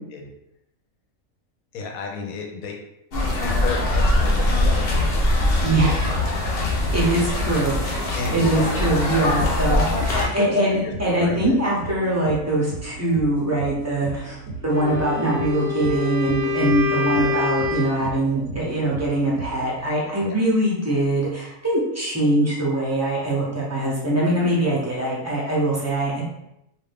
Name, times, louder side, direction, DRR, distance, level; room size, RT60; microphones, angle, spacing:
voice 1, 1.7-2.8 3.3-5.3 8.1-9.3 9.8-10.5 10.8-11.6 20.2-20.4, left 4 dB, 80° left, 2 dB, 1.0 m, -33 dB
sound 1, 3.1-10.3, left 1 dB, 55° left, 0.7 m, -22 dB
voice 2, 5.6-6.1 6.9-8.1 8.3-26.2, right 1 dB, 20° right, -5 dB, 0.4 m, -22 dB
sound 2, 10.7-20.2, right 4 dB, 75° right, 1.1 m, -36 dB
Wind instrument woodwind instrument, 14.6-18.2, left 5 dB, 55° right, 0.7 m, -26 dB
2.6 x 2.3 x 3.4 m, 0.83 s
omnidirectional pair, 1.5 m